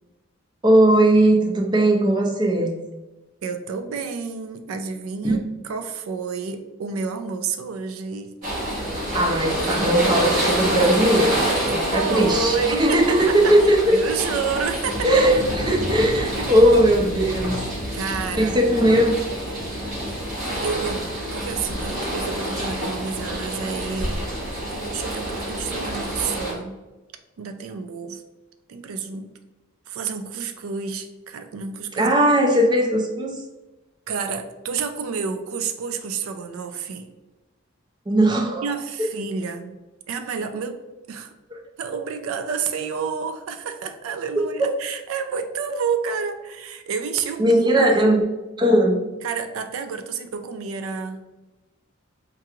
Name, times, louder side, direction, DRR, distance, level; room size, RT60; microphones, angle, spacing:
voice 1, 0.6-2.8 5.2-5.4 9.1-14.0 15.0-17.6 18.4-19.1 32.0-33.4 38.1-38.7 47.4-48.2 48.6-49.1, right 1 dB, 20° right, 0 dB, 0.5 m, -18 dB
voice 2, 3.4-8.9 11.9-13.5 13.9-15.1 16.4-16.6 17.9-18.6 20.2-24.3 24.7-26.8 27.4-28.2 28.7-29.3 29.9-32.1 34.1-37.1 38.6-40.8 41.1-41.3 41.8-48.1 49.2-51.2, right 5 dB, 90° right, 8 dB, 0.4 m, -30 dB
sound 1, 8.4-26.5, right 1 dB, 40° right, 1.5 m, -27 dB
4.6 x 2.9 x 2.4 m, 1.1 s
head